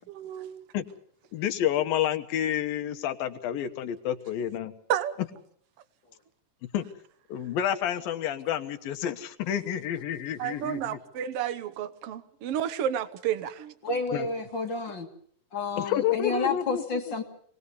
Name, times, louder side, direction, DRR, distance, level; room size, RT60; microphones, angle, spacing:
voice 1, 0.1-0.6 4.9-5.1 10.4-13.7, right 10 dB, 65° right, 1.5 m, -31 dB
voice 2, 1.3-4.7 6.7-6.9 7.3-11.0 14.1-14.3 15.8-17.2, left 10 dB, 80° left, 2.9 m, -29 dB
voice 3, 13.8-15.1 15.5-17.2, left 4 dB, 40° left, 1.9 m, -30 dB
26.0 x 19.5 x 7.0 m
omnidirectional pair, 4.1 m